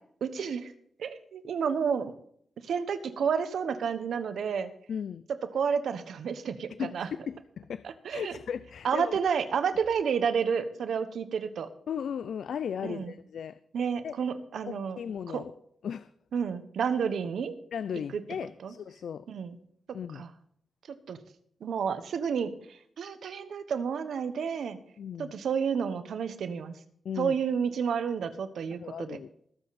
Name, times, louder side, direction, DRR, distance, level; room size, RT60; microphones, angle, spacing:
voice 1, 0.2-0.7 1.0-2.1 2.6-4.7 5.5-7.1 7.8-8.3 8.8-11.7 12.8-13.1 13.7-15.0 15.3-15.4 16.3-17.5 18.1-18.2 18.6-18.7 19.3-19.6 20.1-20.3 21.1-21.2 21.6-24.8 25.2-26.7 27.2-29.2, right 6 dB, 85° right, 10 dB, 1.2 m, -30 dB
voice 2, 4.9-5.2 6.8-7.9 8.1-9.2 11.9-13.6 14.0-14.2 14.6-15.5 15.8-16.1 17.7-19.3 19.9-20.2 25.0-25.3 27.0-27.3 28.8-29.3, left 8 dB, 80° left, 15 dB, 0.4 m, -36 dB
20.5 x 7.5 x 4.2 m, 0.65 s
cardioid pair, 100°, 0 cm